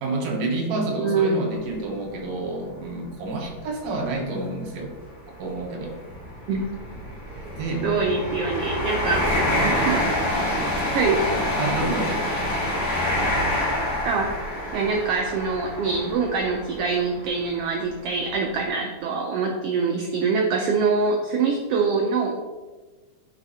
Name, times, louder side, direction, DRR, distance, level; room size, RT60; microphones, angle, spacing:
voice 1, 0.0-4.9 5.4-5.9 7.6-7.8 9.6-10.0 11.6-12.2, right 2 dB, 70° right, 0 dB, 2.3 m, -29 dB
voice 2, 0.7-1.6 6.5-6.7 7.8-9.3 9.9-10.0 10.9-11.2 14.0-14.3 14.7-22.4, right 4 dB, 90° right, 2 dB, 1.3 m, -24 dB
sound 1, 1.5-1.7 2.3-2.4 3.5-3.7 3.9-4.1 4.8-17.5 18.1-18.2, left 1 dB, 80° left, 3.0 m, -26 dB
10.0 x 4.0 x 2.8 m, 1.3 s
omnidirectional pair, 3.4 m